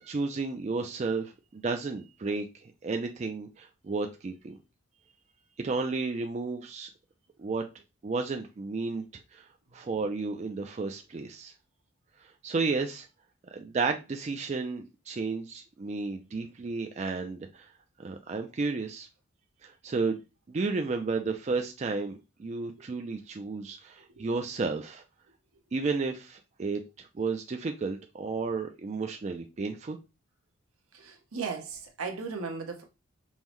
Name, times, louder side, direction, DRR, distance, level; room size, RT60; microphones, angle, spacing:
voice 1, 0.0-4.6 5.6-6.9 7.4-7.6 8.0-9.4 9.7-11.5 12.2-13.1 13.5-17.7 18.0-19.1 19.6-20.2 20.5-25.0 25.7-30.0, right 4 dB, 30° right, 0.3 m, -32 dB
voice 2, 30.9-32.8, right 5 dB, 85° right, 0.9 m, -37 dB
5.4 x 2.1 x 3.0 m
head